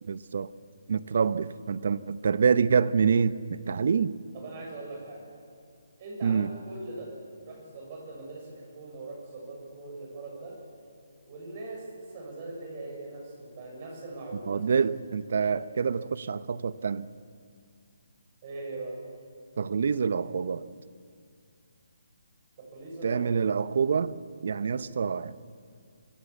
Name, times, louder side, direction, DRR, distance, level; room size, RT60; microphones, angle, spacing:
voice 1, 0.0-0.5 0.9-4.1 6.2-6.5 14.5-17.1 19.6-20.7 23.0-24.1 24.4-25.3, right 6 dB, 60° right, 15 dB, 0.8 m, -26 dB
voice 2, 4.3-5.2 6.0-7.1 7.4-10.5 11.2-14.6 15.4-15.5 18.4-19.0 22.6-23.2 24.7-24.8, right 2 dB, 35° right, -1 dB, 6.9 m, -41 dB
25.0 x 16.0 x 7.3 m, 2.2 s
hypercardioid pair, 155°, 0 cm